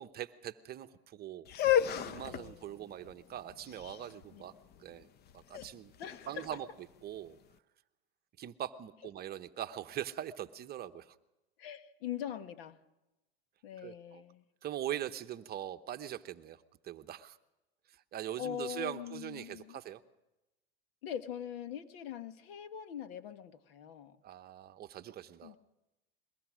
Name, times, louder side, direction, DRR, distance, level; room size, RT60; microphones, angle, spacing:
voice 1, 0.0-1.5 2.0-4.5 4.8-5.1 5.3-5.9 6.3-6.7 7.0-7.4 8.4-11.2 13.8-14.2 14.6-17.4 18.1-20.0 24.2-25.5, right 11 dB, 30° right, 10 dB, 0.9 m, -42 dB
sound 1, 1.4-7.4, left 10 dB, 30° left, 0.7 m, -34 dB
voice 2, 2.2-2.7 4.3-4.4 6.0-6.4 11.6-12.8 13.6-14.4 18.4-19.8 21.0-24.2 25.4-25.6, left 9 dB, 70° left, 11 dB, 1.6 m, -42 dB
22.5 x 18.5 x 6.3 m, 0.98 s
supercardioid pair, 125°, 31 cm